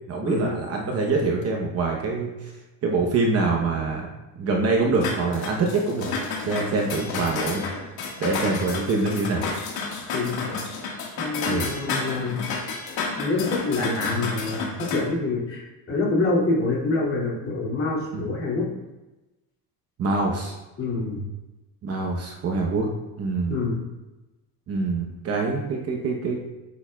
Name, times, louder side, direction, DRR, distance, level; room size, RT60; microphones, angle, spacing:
voice 1, 0.1-2.5 2.8-4.1 4.4-6.1 6.4-7.7 8.2-9.5 11.4-11.8 18.1-18.3 20.0-20.5 21.8-22.9 23.2-23.6 24.7-26.4, right 3 dB, 35° right, 0 dB, 0.9 m, -25 dB
sound 1, 5.0-15.0, left 4 dB, 65° left, 1.6 m, -31 dB
voice 2, 10.1-10.5 11.2-12.4 13.2-18.7 20.8-21.2 23.5-23.8, left 3 dB, 35° left, -5 dB, 2.4 m, -26 dB
8.2 x 7.3 x 2.3 m, 1.0 s
cardioid pair, 155°, 41 cm